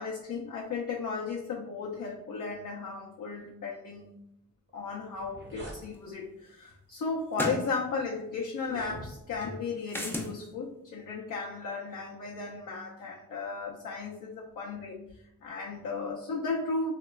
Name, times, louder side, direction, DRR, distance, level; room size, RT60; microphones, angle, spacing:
voice 1, 0.0-4.1 4.7-15.0 15.4-16.9, left 4 dB, 65° left, -3 dB, 0.5 m, -35 dB
sound 1, 4.7-4.8 5.1-5.8 6.7-6.9 7.6-7.7 8.6-9.5, right 1 dB, 30° right, 0.7 m, -44 dB
sound 2, 5.9-6.0 7.3-7.7 9.9-10.3, equal, 5° left, 0.4 m, -32 dB
3.0 x 2.2 x 2.2 m, 0.82 s
wide cardioid pair, 90°, 34 cm